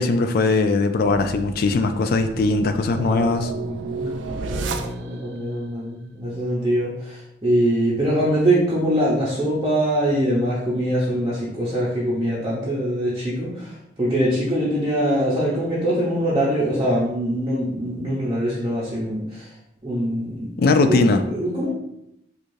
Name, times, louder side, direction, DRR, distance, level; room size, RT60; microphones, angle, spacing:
voice 1, 0.0-3.5 20.6-21.2, left 3 dB, 50° left, 8 dB, 0.3 m, -20 dB
sound 1, 0.8-5.4, right 4 dB, 70° right, 0.3 m, -32 dB
voice 2, 3.0-19.5 19.8-20.6 20.9-21.7, right 1 dB, 25° right, -9 dB, 0.7 m, -23 dB
4.6 x 2.4 x 2.6 m, 0.80 s
head